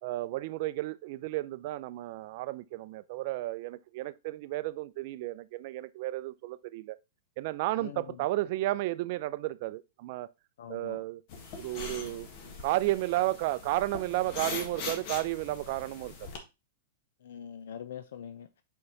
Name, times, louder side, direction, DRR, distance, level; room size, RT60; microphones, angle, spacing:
voice 1, 0.0-7.0 7.4-10.3 10.7-11.2 11.6-12.3 12.6-16.3, right 17 dB, 55° right, 0.4 m, -32 dB
voice 2, 7.8-8.2 10.6-11.0 17.2-18.5, left 8 dB, 70° left, 0.5 m, -43 dB
sound 1, 11.3-16.4, left 4 dB, 50° left, 1.6 m, -41 dB
5.5 x 4.7 x 4.0 m
hypercardioid pair, 115°, 0 cm